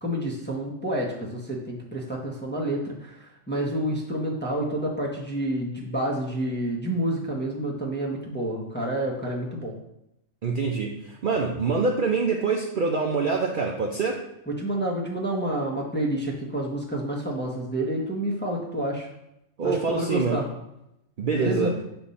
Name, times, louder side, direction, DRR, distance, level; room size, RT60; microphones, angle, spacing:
voice 1, 0.0-9.7 14.5-19.1 19.6-20.5 21.3-21.7, right 1 dB, 10° left, -3 dB, 0.9 m, -29 dB
voice 2, 10.4-14.2 19.6-20.4 21.2-21.7, right 4 dB, 50° right, 1 dB, 0.6 m, -25 dB
7.1 x 3.5 x 4.1 m, 0.85 s
omnidirectional pair, 1.3 m